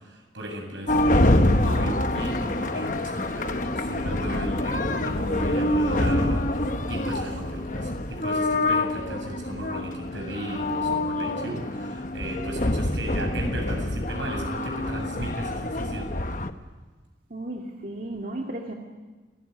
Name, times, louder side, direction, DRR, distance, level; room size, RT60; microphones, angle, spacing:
voice 1, 0.0-16.1, right 1 dB, 85° right, 3 dB, 7.8 m, -35 dB
sound 1, 0.9-16.5, left 1 dB, 45° left, 1.1 m, -26 dB
voice 2, 17.3-18.7, right 1 dB, 50° right, 1 dB, 2.2 m, -34 dB
29.0 x 19.5 x 9.7 m, 1.3 s
head